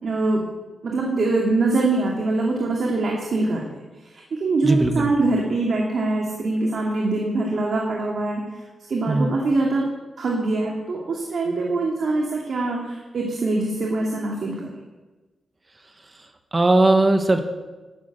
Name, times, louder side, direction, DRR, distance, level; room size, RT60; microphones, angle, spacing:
voice 1, 0.0-0.4 0.8-3.6 4.0-8.4 8.9-9.9 10.2-14.6, right 2 dB, 60° right, -1 dB, 2.3 m, -23 dB
voice 2, 4.6-5.1 9.1-9.4 16.5-17.4, right 2 dB, 30° right, 6 dB, 1.3 m, -18 dB
12.0 x 7.4 x 8.8 m, 1.2 s
cardioid pair, 75°, 0 cm